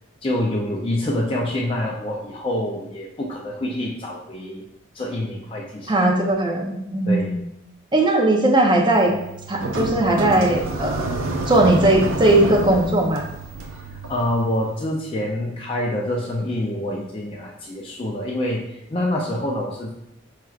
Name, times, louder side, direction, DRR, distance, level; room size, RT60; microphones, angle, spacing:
voice 1, 0.2-4.6 4.9-5.9 7.1-7.4 14.1-19.9, left 1 dB, 30° left, -3 dB, 0.5 m, -26 dB
voice 2, 5.9-7.4 7.9-9.1 9.5-11.1 11.5-13.3, right 1 dB, 25° right, 0 dB, 0.7 m, -18 dB
sound 1, 8.9-14.8, right 2 dB, 85° right, 0.6 m, -29 dB
4.9 x 4.4 x 2.4 m, 0.81 s
head